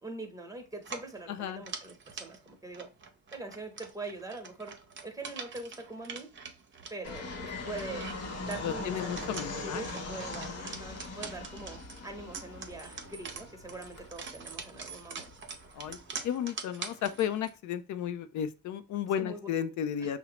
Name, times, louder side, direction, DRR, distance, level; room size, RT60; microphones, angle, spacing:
voice 1, 0.0-2.9 3.3-4.7 5.0-6.3 6.9-8.1 8.4-15.3 19.2-19.4 20.0-20.1, right 3 dB, 10° right, 1.0 m, -43 dB
sound 1, 0.8-17.6, right 5 dB, 40° right, 0.7 m, -45 dB
voice 2, 1.3-1.6 8.6-9.8 10.4-10.8 15.7-16.0 16.2-20.2, left 9 dB, 70° left, 0.5 m, -34 dB
Fixed-wing aircraft airplane, 7.0-16.1, left 3 dB, 55° left, 1.0 m, -41 dB
5.5 x 2.0 x 2.9 m
cardioid pair, 90°, 30 cm